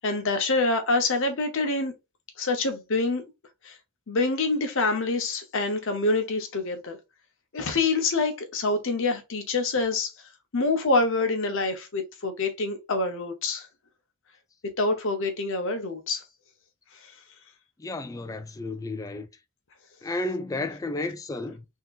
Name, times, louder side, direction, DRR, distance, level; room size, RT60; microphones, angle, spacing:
voice 1, 0.0-1.9 2.4-3.2 3.6-3.7 4.1-7.0 7.5-10.1 10.5-13.7 14.8-16.2, left 3 dB, 65° left, 0.8 m, -26 dB
voice 2, 17.8-19.3 20.0-21.6, left 2 dB, 15° left, 0.3 m, -32 dB
3.5 x 2.8 x 2.4 m
head